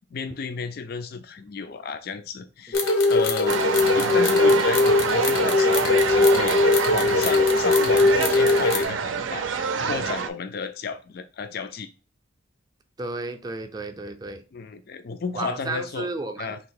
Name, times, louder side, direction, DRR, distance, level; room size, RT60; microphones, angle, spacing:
voice 1, 0.1-2.8 3.1-3.6 3.9-11.9 14.5-16.1 16.4-16.6, left 5 dB, 50° left, 10 dB, 0.4 m, -33 dB
sound 1, 2.7-8.8, left 3 dB, 90° left, 0.9 m, -20 dB
sound 2, 3.5-10.3, right 5 dB, 75° right, 0.5 m, -27 dB
voice 2, 13.0-14.4 15.3-16.5, right 3 dB, 20° right, 6 dB, 0.4 m, -33 dB
3.4 x 2.8 x 4.7 m, 0.34 s
head